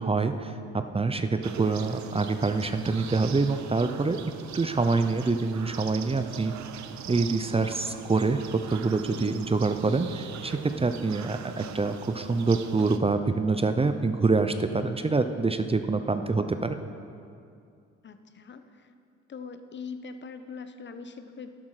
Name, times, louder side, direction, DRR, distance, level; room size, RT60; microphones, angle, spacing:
voice 1, 0.0-4.2 4.5-6.5 7.1-16.8, right 3 dB, 20° right, 9 dB, 0.6 m, -26 dB
sound 1, 1.4-13.0, right 8 dB, 70° right, 0.8 m, -41 dB
voice 2, 18.0-18.9 19.3-21.5, left 5 dB, 40° left, 9 dB, 0.9 m, -42 dB
12.0 x 11.5 x 4.9 m, 2.4 s
cardioid pair, 90°, 30 cm